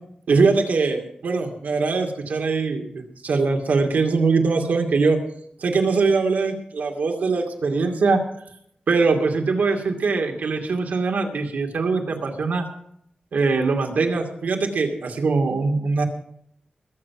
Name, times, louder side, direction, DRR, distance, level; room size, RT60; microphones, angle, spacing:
voice 1, 0.3-5.2 5.6-8.2 8.9-12.6 13.3-16.0, right 4 dB, 85° right, 3 dB, 2.4 m, -22 dB
21.0 x 7.8 x 5.9 m, 0.70 s
wide cardioid pair, 160°, 3 cm